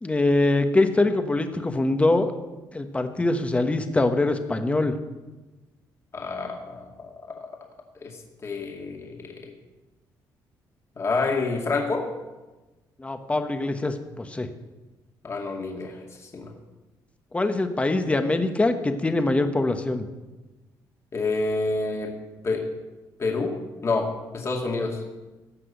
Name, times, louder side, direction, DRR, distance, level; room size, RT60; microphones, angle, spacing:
voice 1, 0.0-2.3 2.7-4.9 13.0-14.5 17.3-20.1, left 2 dB, 15° left, 7 dB, 1.2 m, -23 dB
voice 2, 6.1-7.1 8.0-9.5 11.0-12.1 15.2-16.0 16.3-16.5 21.1-22.1 22.4-22.7 23.2-23.6 23.8-25.0, left 3 dB, 35° left, 1 dB, 2.2 m, -28 dB
15.5 x 6.1 x 8.2 m, 1.1 s
cardioid pair, 105°, 8 cm